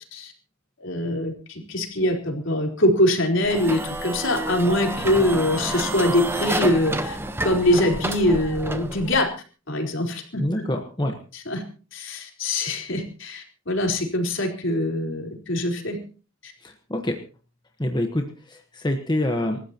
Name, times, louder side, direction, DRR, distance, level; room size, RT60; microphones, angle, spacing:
voice 1, 0.8-9.3 9.7-10.7 11.5-11.6 11.9-16.0 16.4-16.5, left 1 dB, 65° left, 2 dB, 4.2 m, -23 dB
sound 1, 3.4-9.2, right 1 dB, 10° right, 1.0 m, -29 dB
voice 2, 10.4-11.2 16.6-17.2 17.8-19.6, left 1 dB, 20° left, 4 dB, 1.3 m, -26 dB
27.5 x 13.5 x 3.0 m, 0.37 s
head